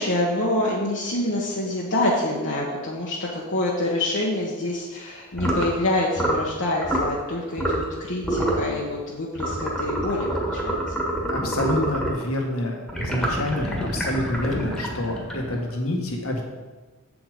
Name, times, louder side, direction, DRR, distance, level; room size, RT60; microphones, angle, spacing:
voice 1, 0.0-10.8, left 1 dB, 55° left, -4 dB, 1.2 m, -26 dB
sound 1, 5.3-5.7 6.1-6.5 6.8-7.1 7.6-7.9 8.2-8.7 9.4-12.2 12.9-15.7, right 1 dB, ahead, 1.7 m, -27 dB
voice 2, 11.3-16.4, left 1 dB, 70° left, 1 dB, 1.7 m, -27 dB
7.9 x 7.2 x 5.1 m, 1.3 s
head